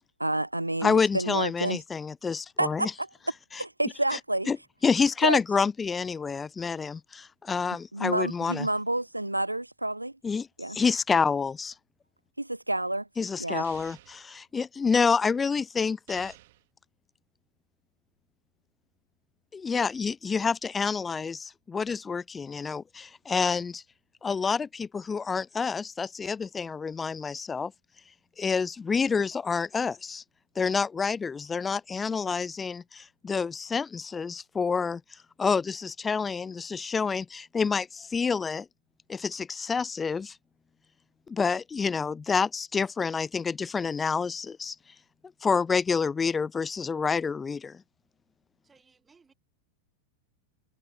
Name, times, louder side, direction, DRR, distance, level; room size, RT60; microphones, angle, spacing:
voice 1, 0.2-1.8 2.6-3.1 3.6-4.5 5.2-5.4 7.9-10.1 10.6-10.8 12.4-13.1 13.4-13.6, right 1 dB, 85° right, 0.5 m, -29 dB
voice 2, 0.8-2.9 3.5-3.6 4.1-4.2 4.5-4.6 4.8-8.7 10.2-11.7 13.2-16.3 19.5-23.8 24.2-27.7 28.4-30.2 30.6-35.0 35.4-38.7 39.1-40.4 41.3-44.8 45.4-47.8, left 5 dB, 15° left, 0.3 m, -28 dB
sound 1, 13.6-14.3 16.1-16.7, right 18 dB, 50° right, 2.6 m, -51 dB
voice 3, 48.6-49.3, right 5 dB, 15° right, 1.8 m, -61 dB
figure-of-eight pair, 90°, 0 cm